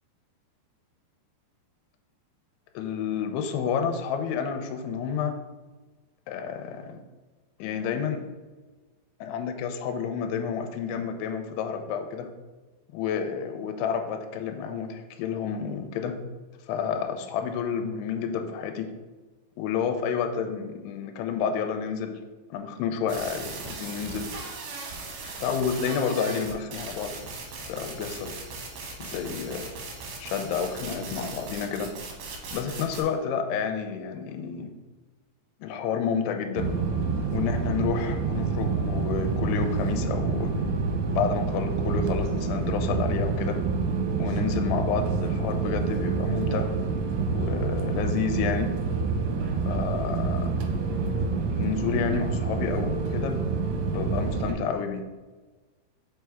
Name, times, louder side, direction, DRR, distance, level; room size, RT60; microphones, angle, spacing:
voice 1, 2.8-5.3 6.3-7.0 7.6-8.2 9.2-12.3 12.9-16.2 16.7-18.9 19.6-22.2 22.5-24.3 25.4-27.1 27.7-28.3 29.0-29.7 30.2-31.9 32.5-34.7 35.6-36.7 37.3-40.5 41.1-43.6 44.2-46.7 47.3-48.7 49.4-50.6 51.6-53.4 53.9-55.0, left 7 dB, 85° left, 5 dB, 2.5 m, -30 dB
sound 1, 23.1-33.0, right 3 dB, 75° right, 2.1 m, -38 dB
sound 2, 36.6-54.5, right 4 dB, 90° right, 2.9 m, -27 dB
6.6 x 4.4 x 3.5 m, 1.3 s
omnidirectional pair, 5.1 m